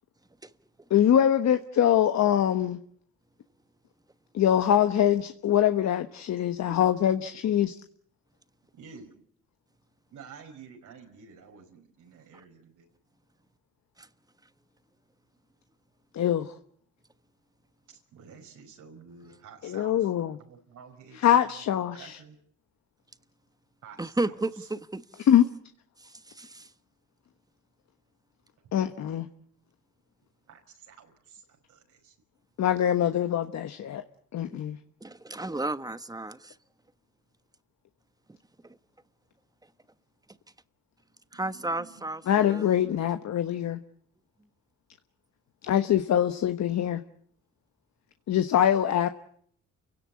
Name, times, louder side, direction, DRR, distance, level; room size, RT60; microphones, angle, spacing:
voice 1, 0.9-2.8 4.3-7.7 16.1-16.5 19.6-20.4 21.2-22.2 25.3-25.4 28.7-29.3 32.6-34.0 34.3-34.8 42.3-43.8 45.6-47.0 48.3-49.1, left 10 dB, 65° left, 1.2 m, -23 dB
voice 2, 8.7-9.1 10.1-12.9 17.9-20.1 20.4-21.7 21.9-22.4 23.8-24.4 30.5-32.2 41.4-42.1, right 6 dB, 80° right, 5.2 m, -50 dB
voice 3, 24.0-25.3 26.0-26.7 34.5-34.6 35.0-36.6 38.6-38.8 41.3-42.7, right 2 dB, 10° right, 1.2 m, -33 dB
29.0 x 17.0 x 8.6 m
cardioid pair, 90°, 30 cm